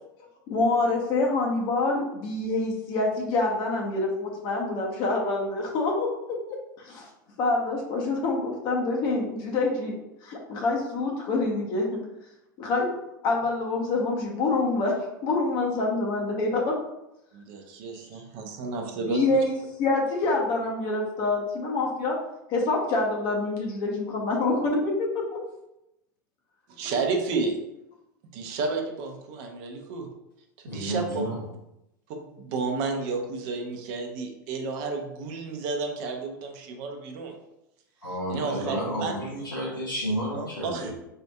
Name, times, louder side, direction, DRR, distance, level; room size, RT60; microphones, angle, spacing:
voice 1, 0.5-7.1 7.4-9.9 10.2-12.0 12.6-12.9 13.2-16.8 19.0-22.2 22.5-25.4, left 3 dB, 45° left, -1 dB, 0.8 m, -26 dB
voice 2, 17.3-19.2 26.7-27.6 28.3-30.1 30.6-31.3 32.1-37.3 38.3-39.1 40.3-40.9, right 4 dB, 50° right, 3 dB, 0.6 m, -31 dB
voice 3, 30.7-31.4 38.0-40.9, equal, 90° left, -7 dB, 0.9 m, -31 dB
4.5 x 2.5 x 2.3 m, 0.86 s
figure-of-eight pair, 90°, 11 cm